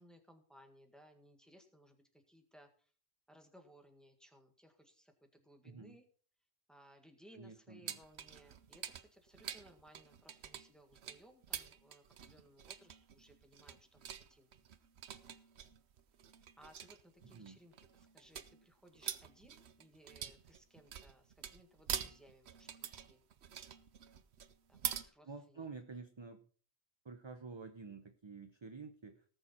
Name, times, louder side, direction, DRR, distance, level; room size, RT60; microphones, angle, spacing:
voice 1, 0.0-2.9 3.3-6.0 6.7-14.5 16.6-23.2 24.7-25.7, equal, ahead, 4 dB, 1.8 m, -63 dB
voice 2, 5.6-6.0 7.4-8.0 17.3-17.6 25.3-26.5 27.0-29.2, right 4 dB, 30° right, 8 dB, 0.8 m, -50 dB
sound 1, 7.9-25.0, right 9 dB, 85° right, 1.1 m, -46 dB
18.5 x 6.8 x 4.3 m, 0.42 s
omnidirectional pair, 1.1 m